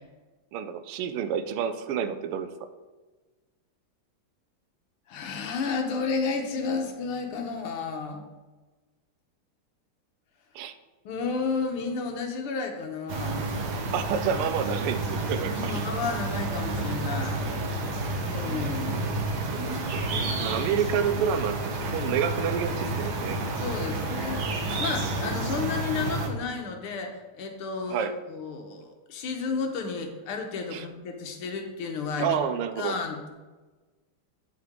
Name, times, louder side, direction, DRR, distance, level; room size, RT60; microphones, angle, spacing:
voice 1, 0.5-2.5 10.5-10.7 13.9-15.8 18.9-19.2 19.5-23.4 27.9-28.1 30.7-30.8 32.2-33.0, right 8 dB, 85° right, 11 dB, 1.6 m, -29 dB
voice 2, 5.1-8.2 11.1-13.5 15.5-17.4 18.3-19.0 23.6-32.4 32.8-33.3, left 4 dB, 80° left, 4 dB, 1.9 m, -32 dB
sound 1, 13.1-26.3, right 2 dB, 55° right, 1.4 m, -30 dB
8.8 x 6.8 x 3.6 m, 1.2 s
omnidirectional pair, 2.4 m